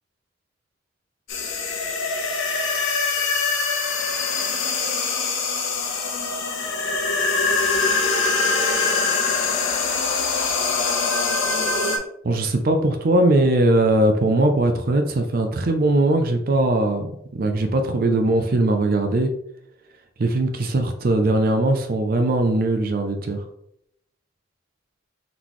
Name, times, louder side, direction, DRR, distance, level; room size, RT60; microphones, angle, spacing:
sound 1, 1.3-12.0, left 4 dB, 85° left, 0.8 m, -23 dB
voice 1, 12.2-19.3 20.2-23.4, right 2 dB, 50° right, 6 dB, 0.4 m, -20 dB
3.9 x 3.7 x 3.0 m, 0.74 s
head